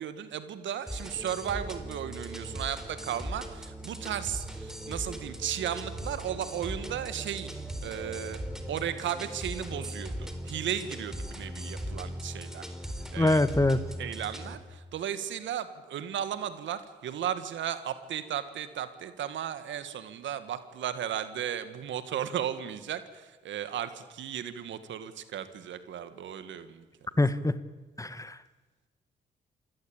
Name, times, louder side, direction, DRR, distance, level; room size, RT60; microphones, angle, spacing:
voice 1, 0.0-7.5 7.8-8.4 8.7-12.7 13.1-13.4 14.0-26.9, right 9 dB, 75° right, 12 dB, 1.7 m, -35 dB
sound 1, 0.9-14.6, equal, 5° right, 4.1 m, -39 dB
voice 2, 13.2-13.8 27.2-27.5 28.0-28.3, left 2 dB, 15° left, 14 dB, 1.5 m, -24 dB
27.5 x 16.5 x 8.8 m, 1.3 s
supercardioid pair, 50°, 19 cm